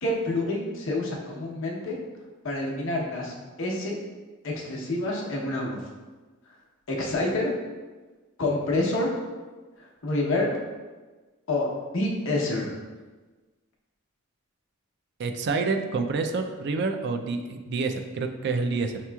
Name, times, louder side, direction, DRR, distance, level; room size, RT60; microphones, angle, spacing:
voice 1, 0.0-2.0 2.4-3.9 4.4-5.8 6.9-7.5 8.4-9.2 10.0-10.5 11.5-11.7 11.9-12.7, left 2 dB, 65° left, -3 dB, 0.8 m, -27 dB
voice 2, 15.2-19.0, right 4 dB, 55° right, 6 dB, 0.3 m, -28 dB
5.8 x 2.9 x 2.2 m, 1.3 s
head